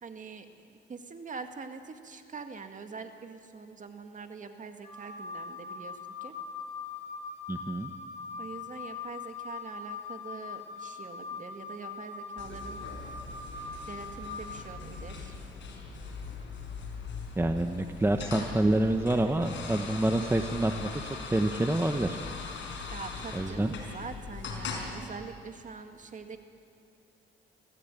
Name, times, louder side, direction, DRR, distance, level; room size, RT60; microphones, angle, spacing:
voice 1, 0.0-6.4 8.4-12.8 13.9-15.3 22.9-26.4, right 5 dB, 40° right, 7 dB, 2.0 m, -44 dB
Wind instrument woodwind instrument, 4.8-14.5, left 5 dB, 35° left, 7.9 m, -41 dB
voice 2, 7.5-7.9 17.4-20.9 21.3-22.2 23.3-23.7, right 1 dB, 10° right, 6 dB, 1.1 m, -27 dB
sound 1, 12.4-24.9, left 4 dB, 70° left, 5.0 m, -40 dB
26.0 x 16.0 x 9.1 m, 2.5 s
cardioid pair, 90°, 20 cm